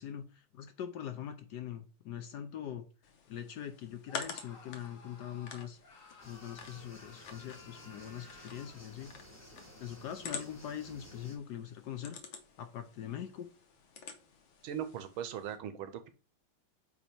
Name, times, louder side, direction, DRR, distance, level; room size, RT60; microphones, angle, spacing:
voice 1, 0.0-2.9 3.3-5.8 6.2-9.1 9.8-12.2 12.6-13.5, left 9 dB, 70° left, 7 dB, 1.0 m, -42 dB
sound 1, 3.0-15.6, left 6 dB, 85° left, 1.7 m, -49 dB
Screaming, 4.1-8.9, left 4 dB, 40° left, 1.8 m, -56 dB
sound 2, 6.2-11.4, left 1 dB, 10° left, 0.8 m, -54 dB
voice 2, 14.6-16.1, right 9 dB, 85° right, 10 dB, 1.6 m, -39 dB
8.0 x 3.0 x 4.4 m, 0.34 s
omnidirectional pair, 2.2 m